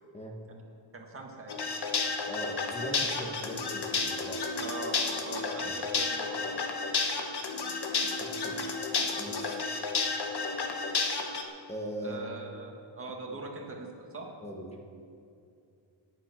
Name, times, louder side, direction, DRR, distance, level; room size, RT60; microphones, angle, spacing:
voice 1, 0.9-1.7 4.6-6.6 12.0-14.3, right 3 dB, 30° right, -1 dB, 1.8 m, -42 dB
sound 1, 1.5-11.4, left 4 dB, 55° left, 1.3 m, -31 dB
voice 2, 2.3-4.5 5.6-5.7 8.2-8.6 9.2-9.6 11.7-12.3 13.3-13.4 14.4-14.8, equal, 15° left, 0 dB, 1.3 m, -40 dB
17.0 x 9.2 x 6.0 m, 2.5 s
wide cardioid pair, 165°, 46 cm